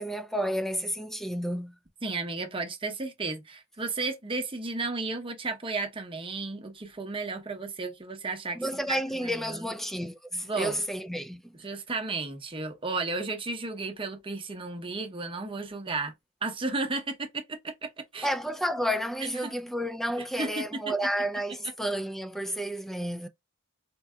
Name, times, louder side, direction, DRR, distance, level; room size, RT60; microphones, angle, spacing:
voice 1, 0.0-1.8 8.5-11.6 18.2-23.3, equal, ahead, 0.3 m, -31 dB
voice 2, 2.0-8.6 8.9-9.7 10.4-10.8 11.6-16.1 16.4-18.3 19.4-19.5 20.4-20.7, right 3 dB, 25° right, 0.8 m, -33 dB
4.5 x 2.7 x 2.2 m
head